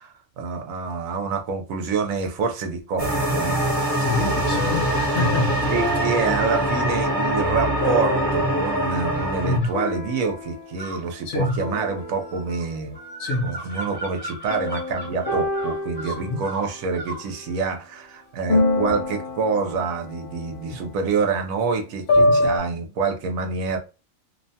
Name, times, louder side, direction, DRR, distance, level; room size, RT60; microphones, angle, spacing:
voice 1, 0.0-4.1 4.5-4.6 5.7-13.0 13.4-23.8, right 5 dB, 85° right, 1.1 m, -27 dB
sound 1, 3.0-9.6, right 1 dB, 30° right, 0.8 m, -23 dB
sound 2, 3.5-9.0 9.7-11.3 11.6-12.9 14.5-17.6 18.5-22.6, left 1 dB, 45° left, 0.7 m, -28 dB
voice 2, 4.0-5.8 9.4-9.7 11.3-11.6 13.2-13.6 16.0-16.4 22.1-22.4, left 2 dB, 65° left, 1.1 m, -26 dB
sound 3, 9.1-9.8 10.8-17.3, right 1 dB, 10° left, 0.7 m, -37 dB
2.8 x 2.1 x 2.6 m
omnidirectional pair, 1.4 m